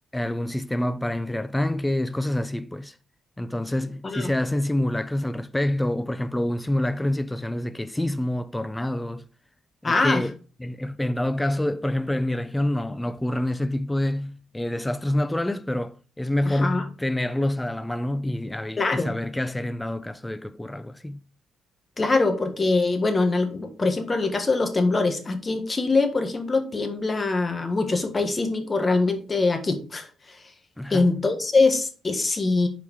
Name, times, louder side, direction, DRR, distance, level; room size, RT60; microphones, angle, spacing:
voice 1, 0.1-3.0 3.4-9.3 9.8-21.2 30.8-31.2, left 1 dB, 10° left, 0.4 m, -27 dB
voice 2, 9.8-10.2 16.5-16.8 18.8-19.1 22.0-30.4 30.9-32.7, left 3 dB, 25° left, 1.3 m, -23 dB
5.4 x 4.7 x 4.7 m
cardioid pair, 90°, 0 cm